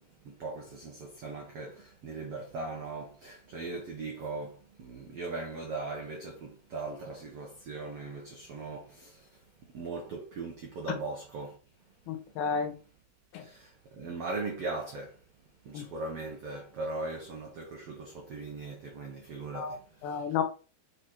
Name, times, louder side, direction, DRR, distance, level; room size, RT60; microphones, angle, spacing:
voice 1, 0.0-11.6 13.3-15.2 15.6-20.3, right 3 dB, 70° right, 1.4 m, -39 dB
voice 2, 12.1-12.7 13.3-13.4 15.7-15.8 19.5-20.4, left 6 dB, 75° left, 2.9 m, -32 dB
8.0 x 4.2 x 4.4 m
omnidirectional pair, 4.8 m